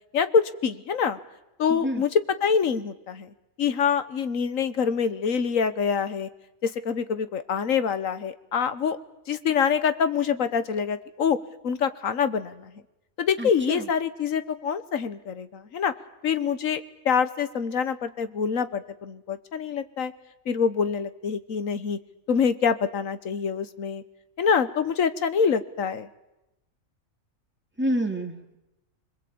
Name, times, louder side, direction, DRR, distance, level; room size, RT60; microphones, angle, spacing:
voice 1, 0.1-1.2 1.6-3.3 3.6-6.3 6.6-9.0 9.3-11.4 11.6-12.7 13.2-15.9 16.2-20.1 20.5-22.0 22.3-24.0 24.4-26.1, left 6 dB, 70° left, 13 dB, 1.5 m, -25 dB
voice 2, 1.7-2.0 13.4-13.8 27.8-28.6, right 1 dB, 10° right, 3 dB, 2.2 m, -28 dB
25.5 x 21.5 x 8.6 m, 0.96 s
omnidirectional pair, 1.4 m